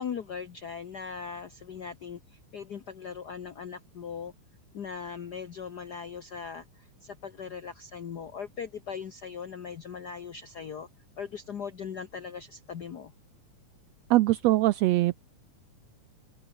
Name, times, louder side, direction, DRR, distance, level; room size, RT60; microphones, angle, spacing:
voice 1, 0.0-4.3 4.7-10.9 11.2-13.1, left 6 dB, 70° left, 0.9 m, -39 dB
voice 2, 14.1-15.2, right 17 dB, 80° right, 1.6 m, -22 dB
open air
omnidirectional pair, 3.6 m